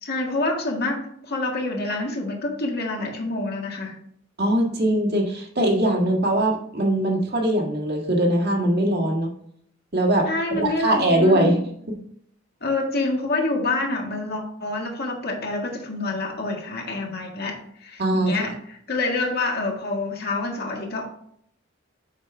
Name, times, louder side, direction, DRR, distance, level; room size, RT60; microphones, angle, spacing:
voice 1, 0.0-4.0 10.3-11.6 12.6-21.1, left 2 dB, 50° left, 0 dB, 1.8 m, -27 dB
voice 2, 4.4-9.3 9.9-11.6 11.9-12.0 18.0-18.3, right 1 dB, 55° right, 0 dB, 1.7 m, -21 dB
7.3 x 5.4 x 3.4 m, 0.67 s
head